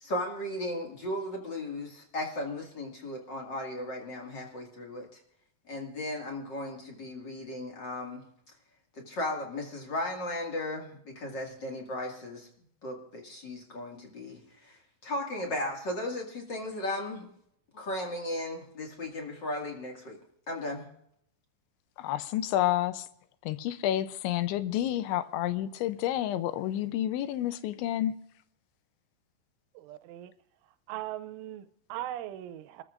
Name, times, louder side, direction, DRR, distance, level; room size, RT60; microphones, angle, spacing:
voice 1, 0.0-5.1 5.7-8.2 8.9-12.5 12.8-17.3 17.7-20.2 20.5-20.9, left 1 dB, 45° left, 1.4 m, -36 dB
voice 2, 22.0-23.1 23.5-28.1, left 12 dB, 85° left, 2.9 m, -29 dB
voice 3, 29.7-30.3 30.9-32.8, right 13 dB, 85° right, 3.1 m, -39 dB
27.5 x 14.0 x 2.5 m
omnidirectional pair, 5.4 m